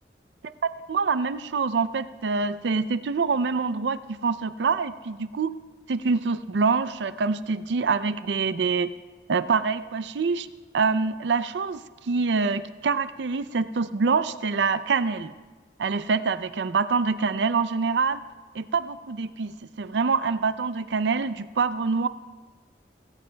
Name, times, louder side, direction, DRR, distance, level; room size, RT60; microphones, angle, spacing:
voice 1, 0.6-5.5 5.9-8.9 9.3-10.5 10.7-15.3 15.8-18.2 18.5-22.1, right 4 dB, 80° right, 13 dB, 0.5 m, -25 dB
18.5 x 16.5 x 2.2 m, 1.3 s
head